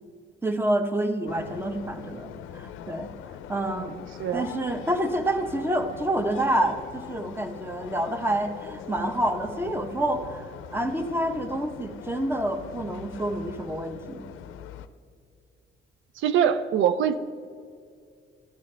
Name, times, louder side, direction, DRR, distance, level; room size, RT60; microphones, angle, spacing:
voice 1, 0.4-3.1 3.5-4.0 4.3-14.2, right 1 dB, 10° right, 7 dB, 0.9 m, -28 dB
sound 1, 1.3-14.9, left 9 dB, 85° left, 0.5 m, -42 dB
voice 2, 16.2-17.2, right 9 dB, 75° right, 11 dB, 0.5 m, -24 dB
13.5 x 9.4 x 3.3 m, 2.2 s
cardioid pair, 90°, 20 cm